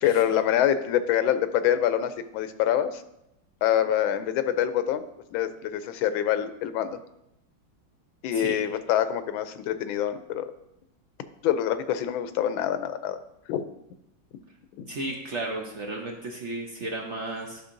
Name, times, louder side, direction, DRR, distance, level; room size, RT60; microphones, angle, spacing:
voice 1, 0.0-3.0 3.6-5.0 5.3-7.0 8.2-10.5 11.4-13.2 13.5-13.6 14.8-14.9, left 10 dB, 90° left, 11 dB, 1.4 m, -25 dB
voice 2, 14.9-17.6, right 2 dB, 55° right, 0 dB, 0.8 m, -34 dB
11.5 x 5.6 x 2.6 m, 0.83 s
omnidirectional pair, 2.1 m